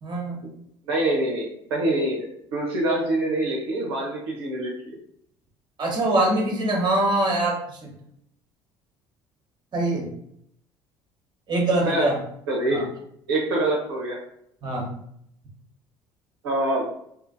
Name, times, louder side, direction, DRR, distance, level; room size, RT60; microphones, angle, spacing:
voice 1, 0.0-0.4 5.8-7.6 7.8-7.9 9.7-10.1 11.5-12.2 12.7-12.8 14.6-14.9, right 2 dB, 35° right, 0 dB, 1.0 m, -23 dB
voice 2, 0.9-5.0 11.9-12.1 12.5-12.8 13.3-14.2 16.4-16.8, right 1 dB, 80° right, -2 dB, 0.7 m, -25 dB
2.7 x 2.5 x 2.6 m, 0.71 s
hypercardioid pair, 60°, 13 cm